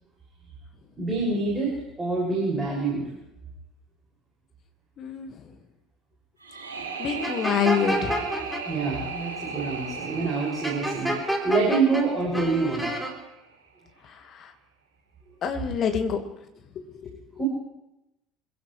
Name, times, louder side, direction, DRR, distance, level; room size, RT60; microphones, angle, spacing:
voice 1, 1.0-3.0 8.6-12.9 17.4-17.5, right 3 dB, 20° right, -5 dB, 6.4 m, -26 dB
voice 2, 5.0-5.5 7.0-8.2 14.0-14.5 15.4-16.2 16.8-17.2, left 7 dB, 40° left, 6 dB, 1.7 m, -27 dB
sound 1, 6.4-13.4, right 5 dB, 85° right, 6.3 m, -36 dB
sound 2, 7.2-8.6 10.6-12.0 12.3-13.1, equal, ahead, 3.6 m, -28 dB
26.0 x 16.5 x 3.3 m, 0.89 s
figure-of-eight pair, 65°, 0 cm